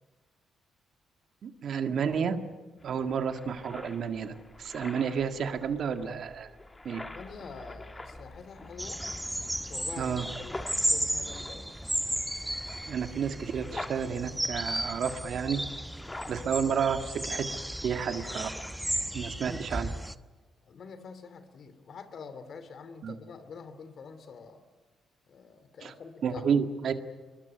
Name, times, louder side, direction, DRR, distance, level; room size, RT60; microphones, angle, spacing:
voice 1, 1.4-2.4 2.8-6.5 6.9-7.0 10.0-10.3 12.9-15.6 16.3-17.5 17.8-18.5 19.1-19.9 23.0-23.2 25.8-25.9 26.2-26.9, right 7 dB, 65° right, 7 dB, 1.8 m, -31 dB
sound 1, 2.8-18.9, left 2 dB, 20° left, 2.2 m, -46 dB
voice 2, 6.9-9.0 9.6-11.7 19.4-19.6 20.6-24.6 25.3-26.5, left 5 dB, 60° left, 11 dB, 2.8 m, -46 dB
sound 2, 8.8-20.2, right 1 dB, 5° right, 1.0 m, -34 dB
23.0 x 21.0 x 9.4 m, 1.3 s
supercardioid pair, 60°, 0 cm